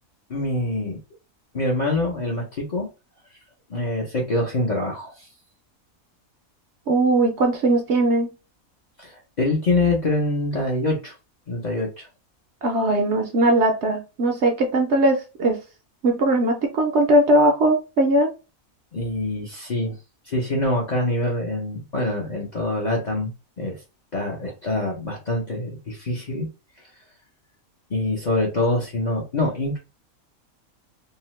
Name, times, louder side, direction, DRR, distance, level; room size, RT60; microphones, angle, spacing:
voice 1, 0.3-1.0 1.5-2.9 3.7-5.3 9.0-11.2 11.5-12.1 18.9-20.0 20.3-23.3 23.6-23.8 24.1-26.5 27.9-29.8, left 2 dB, 45° left, -2 dB, 0.6 m, -25 dB
voice 2, 6.9-8.3 12.6-15.6 16.0-18.3, right 1 dB, 65° right, 3 dB, 0.8 m, -19 dB
2.7 x 2.1 x 3.0 m, 0.29 s
omnidirectional pair, 1.5 m